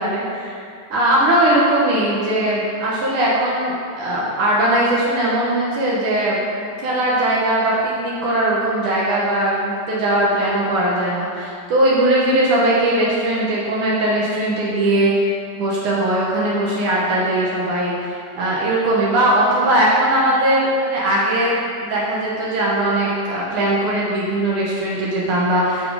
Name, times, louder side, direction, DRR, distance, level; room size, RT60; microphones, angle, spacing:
voice 1, 0.0-6.4 6.8-15.3 15.6-25.9, right 1 dB, 85° right, -5 dB, 1.2 m, -19 dB
6.0 x 4.9 x 4.7 m, 2.3 s
omnidirectional pair, 3.6 m